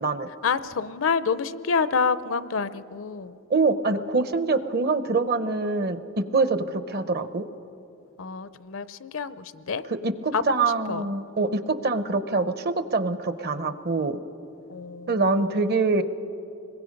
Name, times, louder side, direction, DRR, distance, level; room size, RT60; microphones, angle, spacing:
voice 1, 0.4-3.4 8.2-9.9 10.3-11.0 14.7-15.5, left 5 dB, 70° left, 15 dB, 0.6 m, -28 dB
voice 2, 3.5-6.0 6.3-7.4 9.9-14.2 15.1-16.0, right 3 dB, 50° right, 12 dB, 0.8 m, -24 dB
25.5 x 21.5 x 5.3 m, 2.8 s
head